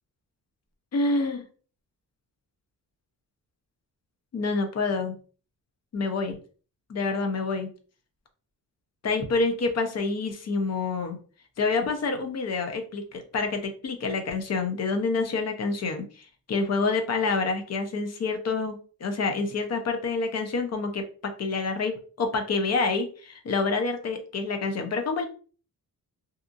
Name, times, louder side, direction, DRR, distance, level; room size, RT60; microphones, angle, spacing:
voice 1, 0.9-1.4 4.3-5.2 5.9-6.4 6.9-7.7 9.0-11.2 11.6-25.3, left 3 dB, 45° left, 6 dB, 0.6 m, -27 dB
2.8 x 2.4 x 2.4 m, 0.39 s
wide cardioid pair, 135°, 37 cm